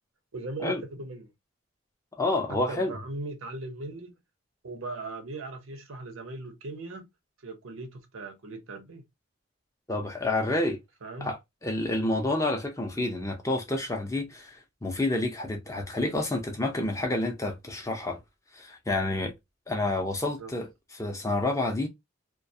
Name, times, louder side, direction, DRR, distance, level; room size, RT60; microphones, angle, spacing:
voice 1, 0.3-1.3 2.5-4.1 4.6-7.1 7.4-9.0 11.0-11.3 20.2-20.5, right 2 dB, 85° right, 0.7 m, -39 dB
voice 2, 2.1-2.9 9.9-10.8 11.2-18.2 18.5-19.3 19.7-21.9, left 2 dB, 15° left, 0.5 m, -29 dB
2.3 x 2.2 x 2.6 m
head